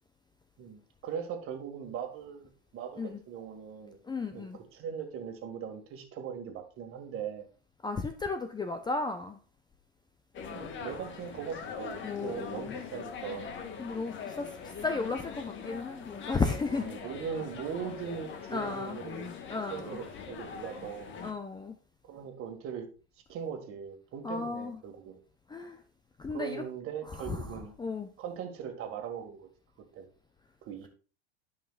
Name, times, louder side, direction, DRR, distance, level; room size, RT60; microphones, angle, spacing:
voice 1, 0.6-4.0 4.3-7.5 10.5-13.6 15.7-15.8 16.7-19.3 19.7-21.1 22.0-22.9 23.3-25.2 26.3-27.7 28.2-29.5 29.9-30.1 30.7-30.9, right 7 dB, 40° right, 5 dB, 1.8 m, -40 dB
voice 2, 4.0-4.6 7.8-9.4 12.0-12.8 13.8-14.5 14.8-16.9 18.5-19.0 19.5-20.0 21.2-21.8 24.2-24.8 25.5-25.8 26.2-26.6 27.3-27.5 27.8-28.1, left 3 dB, 15° left, 7 dB, 0.6 m, -34 dB
sound 1, 10.3-21.3, left 6 dB, 35° left, 1.3 m, -42 dB
12.5 x 5.7 x 2.4 m, 0.37 s
hypercardioid pair, 100°, 34 cm